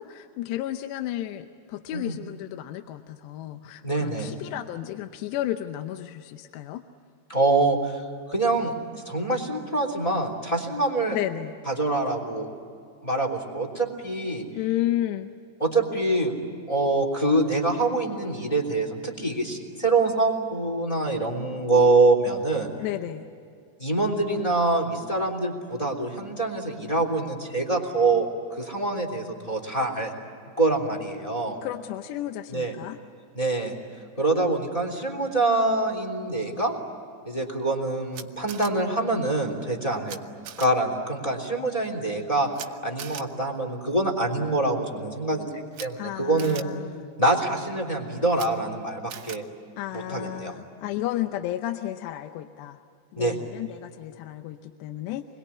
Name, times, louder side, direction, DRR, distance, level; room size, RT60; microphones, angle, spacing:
voice 1, 0.0-6.8 11.1-11.5 14.6-15.3 22.8-23.3 31.6-33.0 46.0-47.1 49.8-52.8 53.1-55.3, left 13 dB, 85° left, 7 dB, 3.0 m, -32 dB
voice 2, 3.8-4.3 7.3-8.0 8.3-8.7 9.0-11.2 11.7-12.5 13.0-14.4 15.6-16.3 16.7-22.7 23.8-28.3 28.6-30.1 30.6-31.6 32.5-32.7 33.3-33.8 34.2-36.7 37.2-40.2 40.6-42.5 42.8-46.6 47.2-49.4 49.9-50.5 53.2-53.4, right 2 dB, 10° left, 1 dB, 2.5 m, -25 dB
Camera, 38.1-38.7 40.1-40.2 40.4-40.7 42.5-42.7 43.0-43.2 45.7-45.9 46.4-46.6 48.3-48.5 49.1-49.4, right 9 dB, 90° right, 1.5 m, -39 dB
27.5 x 21.5 x 9.8 m, 2.4 s
omnidirectional pair, 4.9 m